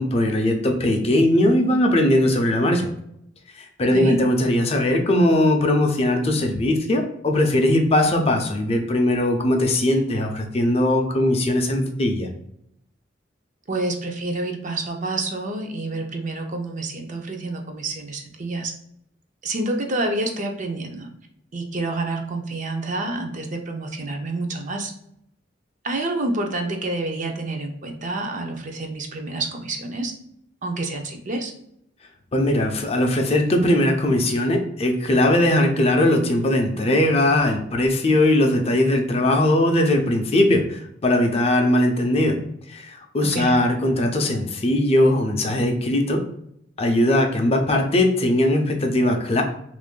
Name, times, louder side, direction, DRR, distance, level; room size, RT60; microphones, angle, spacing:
voice 1, 0.0-2.9 3.6-12.3 32.3-42.4 42.7-46.2 46.8-49.4, left 1 dB, 30° left, 3 dB, 0.5 m, -20 dB
voice 2, 3.8-4.2 13.7-18.7 19.4-21.1 21.5-24.9 25.8-30.1 30.6-31.5 43.2-43.6, right 2 dB, 40° right, 3 dB, 0.5 m, -28 dB
3.0 x 2.5 x 3.7 m, 0.74 s
head